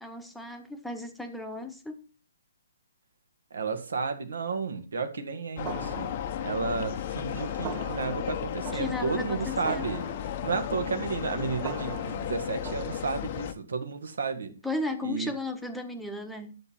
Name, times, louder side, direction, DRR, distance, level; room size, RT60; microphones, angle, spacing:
voice 1, 0.0-2.0 8.7-9.9 14.6-16.6, left 2 dB, ahead, 1.2 m, -35 dB
voice 2, 3.5-6.1 6.4-10.1 10.4-14.5 15.0-15.3, right 4 dB, 65° right, 2.0 m, -32 dB
sound 1, 5.6-13.5, left 10 dB, 40° left, 0.8 m, -34 dB
sound 2, 5.7-13.5, right 9 dB, 25° right, 0.9 m, -43 dB
10.5 x 7.9 x 4.4 m
figure-of-eight pair, 130°, 0 cm